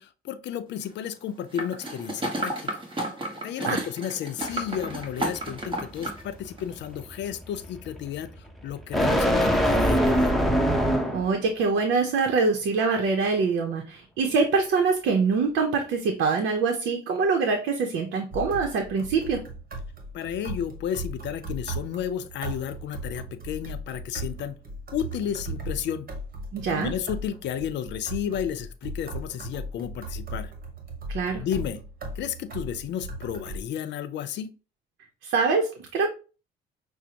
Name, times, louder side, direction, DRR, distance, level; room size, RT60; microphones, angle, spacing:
voice 1, 0.0-2.8 3.4-8.3 8.6-10.5 20.1-24.6 24.9-26.1 26.7-30.5 31.4-31.8 32.2-34.5, left 9 dB, 65° left, 10 dB, 0.6 m, -32 dB
sound 1, 1.6-6.2 6.6-6.7, right 1 dB, 25° right, 1.3 m, -32 dB
sound 2, 4.4-11.4, equal, ahead, 0.8 m, -25 dB
voice 2, 11.1-19.4 26.5-26.9 31.1-31.4 35.2-36.1, right 4 dB, 75° right, 3 dB, 0.7 m, -24 dB
sound 3, 18.3-33.6, right 2 dB, 50° right, 1.3 m, -37 dB
6.1 x 2.1 x 2.8 m, 0.34 s
supercardioid pair, 80°, 19 cm